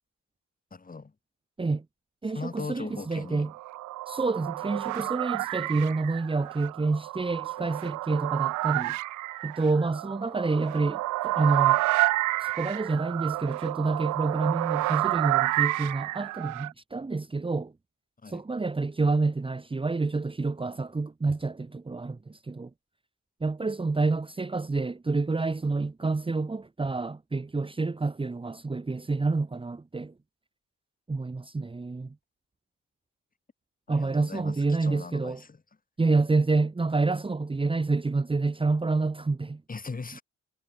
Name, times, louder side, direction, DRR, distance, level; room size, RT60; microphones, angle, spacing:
voice 1, 0.7-1.1 2.3-3.5 18.2-18.4 33.9-35.6 39.7-40.2, left 4 dB, 30° left, 6.0 m, -39 dB
voice 2, 2.2-3.5 4.1-9.0 9.4-11.8 12.4-17.7 18.3-22.7 23.4-30.1 31.1-32.1 33.9-35.4 36.0-39.6, right 3 dB, 15° right, 1.3 m, -28 dB
sound 1, 3.3-16.7, right 18 dB, 75° right, 0.5 m, -29 dB
cardioid pair, 90°, 30 cm